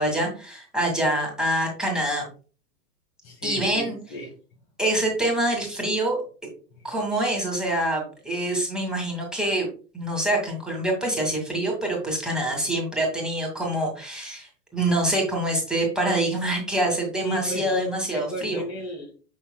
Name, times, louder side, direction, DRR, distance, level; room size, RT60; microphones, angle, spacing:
voice 1, 0.0-2.3 3.4-4.0 4.8-6.2 6.8-9.7 9.9-18.6, right 1 dB, ahead, -1 dB, 2.1 m, -25 dB
voice 2, 3.2-4.4 6.7-6.9 17.2-19.2, equal, 40° left, 3 dB, 1.8 m, -35 dB
7.2 x 5.7 x 2.3 m, 0.37 s
figure-of-eight pair, 95°, 48 cm